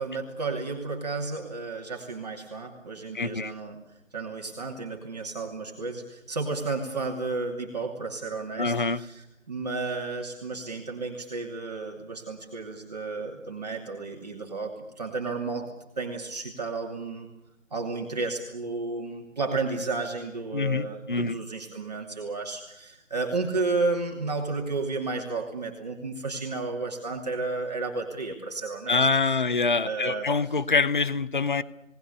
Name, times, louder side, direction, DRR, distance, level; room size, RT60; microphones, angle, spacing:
voice 1, 0.0-17.3 17.7-29.4 29.8-30.6, right 3 dB, 30° right, 0 dB, 2.7 m, -32 dB
voice 2, 3.1-3.5 8.6-9.0 20.5-21.3 28.9-31.6, left 4 dB, 40° left, 17 dB, 0.9 m, -25 dB
29.5 x 19.0 x 6.9 m, 0.85 s
figure-of-eight pair, 165°, 38 cm